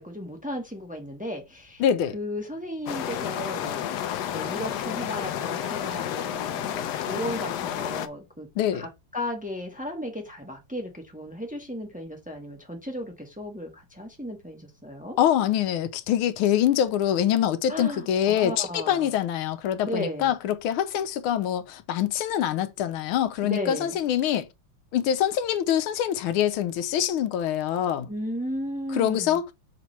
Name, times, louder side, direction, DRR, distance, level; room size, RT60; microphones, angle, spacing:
voice 1, 0.0-1.8 2.1-4.0 4.3-8.5 8.8-15.2 17.7-19.1 19.8-20.3 23.4-24.0 28.1-29.4, left 1 dB, 10° right, 0.5 m, -35 dB
voice 2, 1.8-2.2 8.6-8.9 15.2-24.5 24.9-28.1 28.9-29.4, left 10 dB, 90° left, 1.5 m, -24 dB
sound 1, 2.9-8.1, left 10 dB, 70° left, 1.0 m, -31 dB
5.8 x 3.0 x 5.5 m
omnidirectional pair, 2.3 m